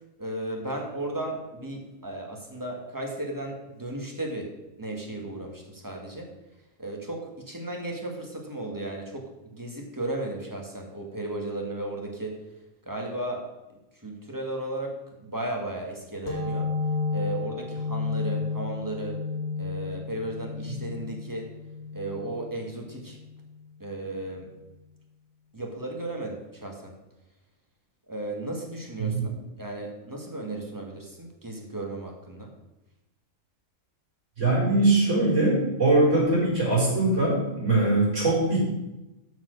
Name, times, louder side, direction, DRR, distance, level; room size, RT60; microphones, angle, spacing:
voice 1, 0.2-4.5 4.8-6.3 6.8-12.4 12.9-13.5 14.0-16.7 17.1-19.2 19.6-21.5 21.9-23.2 23.8-24.5 25.5-26.9 28.1-29.2 29.6-32.5, right 1 dB, 15° right, 0 dB, 1.8 m, -35 dB
sound 1, 16.3-23.6, left 4 dB, 45° left, 1.9 m, -32 dB
voice 2, 34.4-38.6, right 2 dB, 55° right, -5 dB, 4.8 m, -22 dB
12.5 x 4.8 x 6.5 m, 0.98 s
omnidirectional pair, 1.5 m